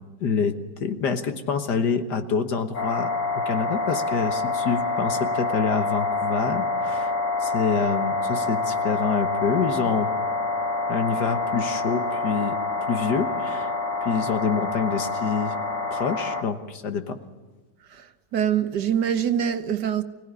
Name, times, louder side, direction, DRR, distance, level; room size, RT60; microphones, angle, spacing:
voice 1, 0.2-0.5 0.8-7.1 7.4-10.1 10.9-12.6 12.9-13.7 14.0-15.5 15.9-17.2, left 6 dB, 65° left, 1.9 m, -26 dB
sound 1, 2.7-16.4, left 3 dB, 45° left, 1.6 m, -27 dB
voice 2, 17.9-20.0, right 9 dB, 65° right, 1.6 m, -24 dB
25.0 x 17.0 x 9.7 m
omnidirectional pair, 2.0 m